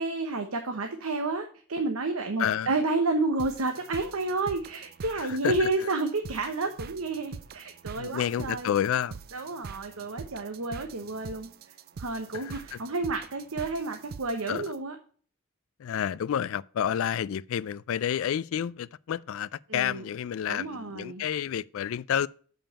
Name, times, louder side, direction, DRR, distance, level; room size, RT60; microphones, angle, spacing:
voice 1, 0.0-8.7 9.3-11.5 12.0-15.0 19.7-20.0 20.5-21.2, right 3 dB, 75° right, 1.0 m, -30 dB
voice 2, 2.4-2.8 5.2-5.9 8.0-9.2 12.3-12.8 14.5-14.6 15.8-22.3, left 9 dB, 65° left, 0.3 m, -30 dB
sound 1, 3.4-14.8, right 5 dB, 45° right, 0.3 m, -44 dB
7.0 x 5.6 x 5.5 m
head